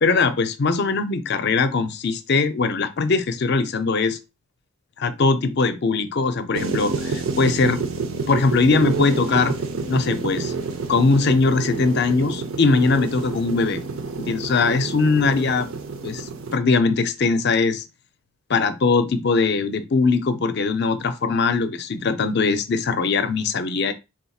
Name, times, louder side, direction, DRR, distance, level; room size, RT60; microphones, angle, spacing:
voice 1, 0.0-4.2 5.0-7.8 8.3-9.5 9.9-10.5 10.9-13.8 14.2-15.7 16.0-17.8 18.5-23.9, left 4 dB, 55° left, 0.5 m, -21 dB
sound 1, 6.5-16.6, right 4 dB, 85° right, 0.6 m, -29 dB
4.1 x 3.6 x 2.3 m
head